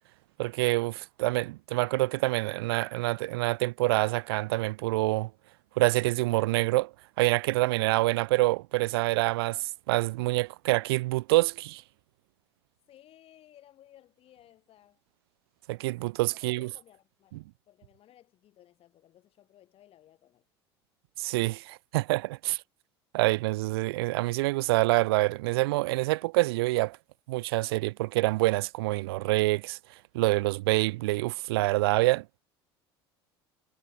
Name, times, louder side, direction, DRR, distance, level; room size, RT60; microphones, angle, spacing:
voice 1, 0.4-5.3 5.8-11.8 15.7-16.7 21.2-22.6 23.1-27.0 27.3-29.8 30.1-32.4, right 20 dB, 65° right, 0.4 m, -26 dB
voice 2, 12.9-15.0 16.4-20.5, left 12 dB, 45° left, 6.2 m, -58 dB
figure-of-eight pair, 70°, 14 cm